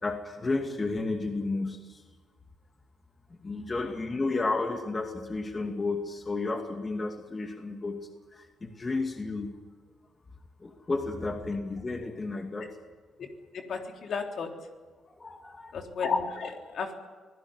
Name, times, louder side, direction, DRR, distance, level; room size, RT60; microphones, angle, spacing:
voice 1, 0.0-2.0 3.4-9.6 10.6-12.8 15.2-15.7, left 3 dB, 25° left, 5 dB, 2.4 m, -32 dB
voice 2, 13.7-14.5 15.7-16.9, left 5 dB, 60° left, 4 dB, 3.7 m, -32 dB
25.0 x 17.0 x 9.7 m, 1.5 s
cardioid pair, 90°, 0 cm